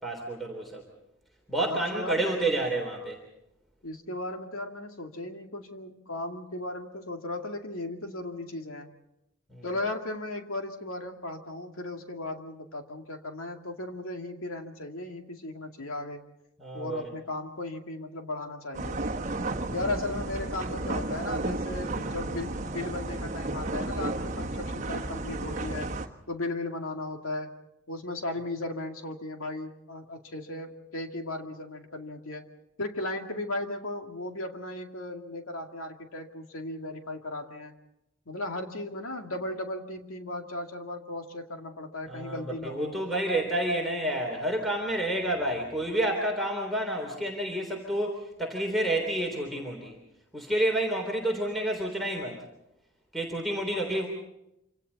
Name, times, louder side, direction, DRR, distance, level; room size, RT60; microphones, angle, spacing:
voice 1, 0.0-0.8 1.5-3.2 9.5-9.7 16.6-17.0 19.5-19.8 42.1-50.0 50.3-52.4 53.1-54.1, right 1 dB, ahead, 1 dB, 3.5 m, -29 dB
voice 2, 1.6-2.3 3.8-8.9 9.6-16.2 16.7-19.1 19.7-25.9 26.3-27.5 27.9-32.5 32.8-37.7 38.3-43.0, left 2 dB, 85° left, 3 dB, 2.3 m, -36 dB
sound 1, 18.7-26.1, right 2 dB, 35° right, 1.5 m, -33 dB
27.0 x 26.5 x 4.2 m, 0.84 s
head